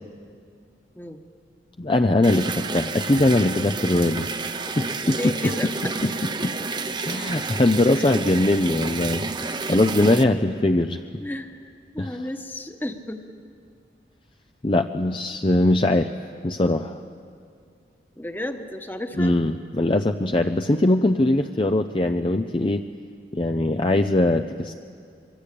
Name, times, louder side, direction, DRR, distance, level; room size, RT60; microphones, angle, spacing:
voice 1, 1.8-4.3 4.8-5.5 6.0-6.1 6.4-6.5 7.0-11.0 12.0-12.3 14.6-16.1 16.4-17.0 19.2-22.8 23.3-24.7, left 2 dB, 30° left, 6 dB, 0.6 m, -21 dB
sound 1, 2.2-10.2, right 4 dB, 25° right, 0.9 m, -30 dB
voice 2, 5.0-5.9 8.0-8.1 9.5-9.8 11.2-11.6 11.9-13.2 18.2-19.3, left 1 dB, 10° left, 6 dB, 1.3 m, -33 dB
25.0 x 23.0 x 8.6 m, 2.3 s
head